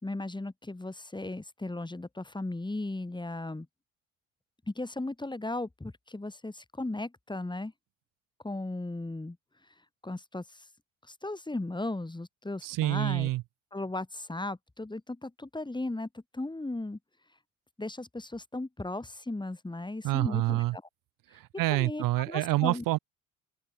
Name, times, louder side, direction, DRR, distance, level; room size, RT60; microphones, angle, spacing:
voice 1, 0.0-3.7 4.7-7.7 8.4-9.4 10.0-10.4 11.1-13.3 13.7-17.0 17.8-20.8 21.7-22.8, left 2 dB, 15° left, 5.3 m, -36 dB
voice 2, 12.6-13.4 20.0-20.8 21.3-23.0, right 18 dB, 75° right, 3.2 m, -27 dB
open air
supercardioid pair, 70°, 33 cm